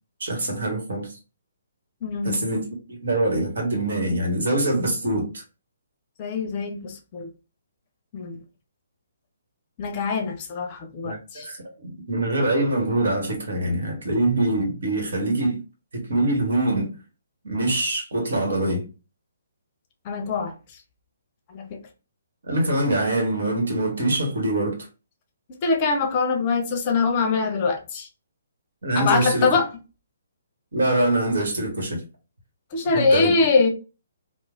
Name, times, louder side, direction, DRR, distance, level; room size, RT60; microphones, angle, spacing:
voice 1, 0.2-1.2 2.2-5.4 11.0-15.6 15.9-17.0 17.4-18.9 22.4-24.9 28.8-29.6 30.7-32.0 32.9-33.3, right 1 dB, 70° right, 1.2 m, -24 dB
voice 2, 2.0-2.4 6.2-7.3 8.1-8.4 9.8-11.5 20.0-20.5 21.5-21.8 25.5-28.1 29.0-29.7 32.7-33.7, left 4 dB, 35° left, 0.6 m, -23 dB
3.1 x 2.1 x 2.4 m
figure-of-eight pair, 135°, 0 cm